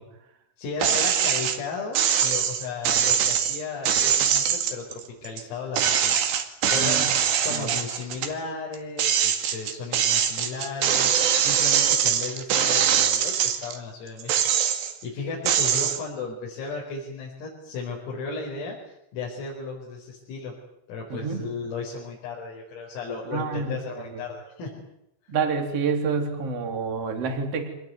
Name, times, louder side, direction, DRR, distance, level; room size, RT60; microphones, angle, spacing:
voice 1, 0.6-6.2 6.7-18.8 19.1-20.6 20.9-24.8, left 4 dB, 90° left, -4 dB, 7.7 m, -35 dB
sound 1, 0.8-1.6 2.0-5.4 5.8-8.3 8.7-13.8 14.2-15.0 15.5-16.0, right 9 dB, 65° right, 4.0 m, -23 dB
voice 2, 6.7-7.0 7.5-7.7 21.1-21.4 23.3-24.2 25.3-27.7, right 5 dB, 35° right, 5 dB, 3.8 m, -28 dB
27.0 x 19.5 x 9.5 m, 0.82 s
omnidirectional pair, 5.9 m